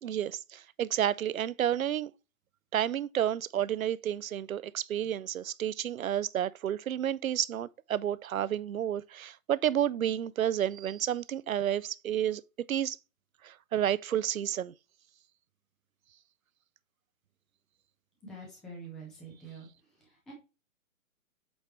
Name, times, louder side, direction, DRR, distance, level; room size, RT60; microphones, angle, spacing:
voice 1, 0.0-2.1 2.7-12.4 12.7-13.0 13.4-14.7, right 10 dB, 75° right, 0.6 m, -31 dB
voice 2, 18.2-20.3, right 3 dB, ahead, 0.4 m, -47 dB
8.0 x 3.3 x 4.2 m
hypercardioid pair, 135°, 42 cm